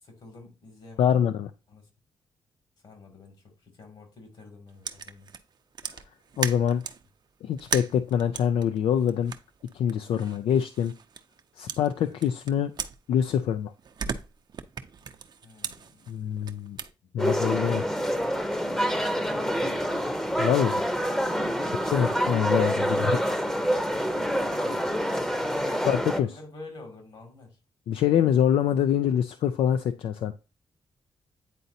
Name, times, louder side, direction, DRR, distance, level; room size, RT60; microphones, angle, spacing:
voice 1, 0.0-1.2 1.7-1.9 2.8-5.3 10.3-10.5 11.9-12.2 15.4-16.1 17.4-20.1 21.4-22.1 23.8-27.6, left 2 dB, 65° left, 2.3 m, -48 dB
voice 2, 1.0-1.5 6.4-6.8 7.4-9.3 9.7-10.9 11.6-12.7 13.1-13.7 16.1-16.8 17.1-17.8 20.4-20.9 21.9-23.2 25.9-26.3 27.9-30.3, left 9 dB, 85° left, 0.4 m, -25 dB
sound 1, 4.8-7.1 7.6-11.4 11.7-13.5 13.8-16.9, right 6 dB, 55° right, 0.6 m, -37 dB
sound 2, 17.2-26.2, equal, 5° left, 0.7 m, -27 dB
9.0 x 4.0 x 2.7 m
cardioid pair, 85°, 9 cm